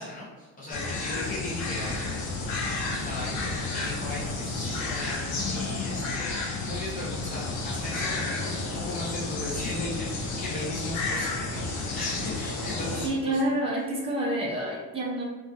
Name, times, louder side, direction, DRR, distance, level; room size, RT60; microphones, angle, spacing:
voice 1, 0.0-2.3 2.6-13.5, left 1 dB, 25° left, -7 dB, 0.6 m, -37 dB
sound 1, 0.7-13.1, left 3 dB, 85° left, 0.7 m, -31 dB
sound 2, 4.5-12.9, equal, 55° left, 1.4 m, -45 dB
voice 2, 13.0-15.2, right 1 dB, 15° right, -4 dB, 0.5 m, -28 dB
2.4 x 2.3 x 2.6 m, 1.3 s
cardioid pair, 155°, 36 cm